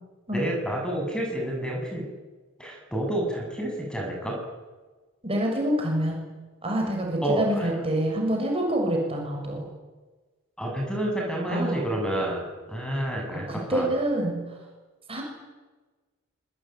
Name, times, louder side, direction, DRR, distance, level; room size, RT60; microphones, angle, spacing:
voice 1, 0.3-2.1 2.6-4.4 7.2-7.7 10.6-13.9, right 1 dB, 5° left, 0 dB, 7.9 m, -29 dB
voice 2, 5.2-6.2 6.6-9.7 11.5-11.8 13.3-14.4 15.1-15.2, right 1 dB, 25° right, 0 dB, 7.0 m, -26 dB
26.5 x 23.5 x 9.5 m, 1.3 s
head